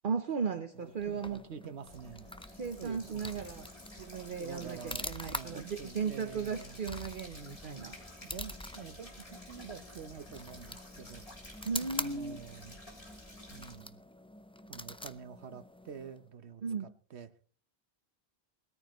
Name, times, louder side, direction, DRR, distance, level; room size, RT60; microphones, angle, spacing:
voice 1, 0.0-1.4 2.5-3.7 4.0-8.0 11.6-12.4 16.6-16.9, right 5 dB, 55° right, 8 dB, 1.0 m, -36 dB
sound 1, 0.7-16.3, left 1 dB, 5° left, 0.4 m, -46 dB
voice 2, 0.7-2.4 2.8-3.3 4.4-6.8 8.2-12.8 13.5-14.0 14.7-16.6 17.1-17.3, right 7 dB, 85° right, 11 dB, 1.3 m, -48 dB
sound 2, 1.9-13.7, left 1 dB, 35° left, 3.5 m, -52 dB
20.0 x 13.5 x 3.1 m, 0.43 s
omnidirectional pair, 1.1 m